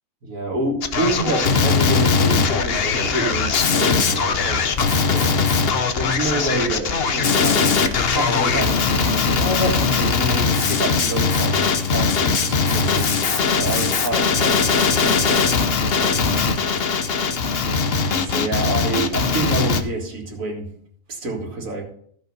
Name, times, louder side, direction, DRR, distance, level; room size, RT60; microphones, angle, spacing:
voice 1, 0.2-5.5 6.0-13.2 13.5-15.5 16.0-16.5 17.9-20.7 21.1-21.8, right 2 dB, 75° right, 2 dB, 2.3 m, -28 dB
Male speech man speaking, 0.8-19.8, left 5 dB, 50° left, 1.0 m, -20 dB
14.5 x 5.5 x 5.4 m, 0.63 s
omnidirectional pair, 1.4 m